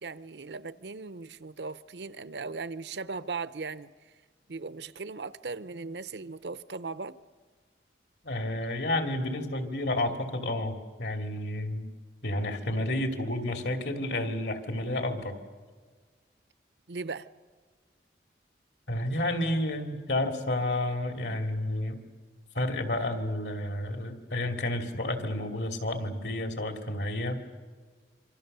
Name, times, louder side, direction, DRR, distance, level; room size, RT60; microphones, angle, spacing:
voice 1, 0.0-3.9 4.5-7.2 16.9-17.3, right 4 dB, 80° right, 15 dB, 0.7 m, -38 dB
voice 2, 8.2-11.9 12.2-15.4 18.9-22.0 22.5-27.4, left 1 dB, 80° left, 5 dB, 2.8 m, -30 dB
26.5 x 25.5 x 6.8 m, 1.5 s
head